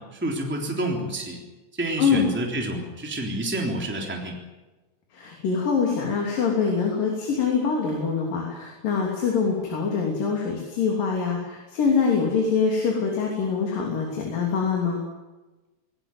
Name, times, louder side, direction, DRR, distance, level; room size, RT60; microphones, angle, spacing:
voice 1, 0.0-1.4 1.8-4.4, right 1 dB, 5° right, 0 dB, 3.1 m, -29 dB
voice 2, 5.1-15.0, left 5 dB, 75° left, 0 dB, 4.9 m, -24 dB
19.5 x 18.5 x 9.3 m, 1.1 s
omnidirectional pair, 3.9 m